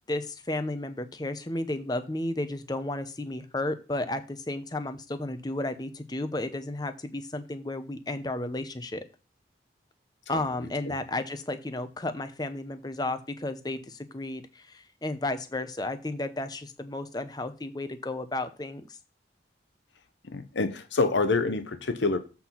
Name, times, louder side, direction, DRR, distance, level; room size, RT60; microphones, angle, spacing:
voice 1, 0.1-9.0 10.3-18.9, left 2 dB, 20° left, 10 dB, 0.7 m, -33 dB
voice 2, 10.3-10.9 20.2-22.2, left 3 dB, 85° left, 9 dB, 0.9 m, -27 dB
7.8 x 4.3 x 5.6 m, 0.32 s
head